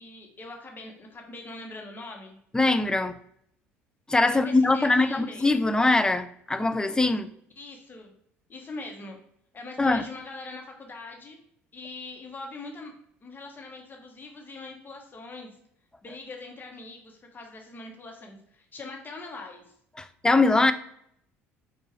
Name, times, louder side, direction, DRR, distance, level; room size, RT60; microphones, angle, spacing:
voice 1, 0.0-2.4 4.3-5.5 7.6-8.1 8.5-9.2 9.5-11.4 11.7-12.9 13.2-15.5 16.0-19.6, left 3 dB, 30° left, 1.0 m, -42 dB
voice 2, 2.5-3.2 4.1-7.3 9.8-10.0 20.0-20.7, left 2 dB, 10° left, 0.3 m, -22 dB
4.5 x 2.4 x 3.0 m
hypercardioid pair, 60°, 7 cm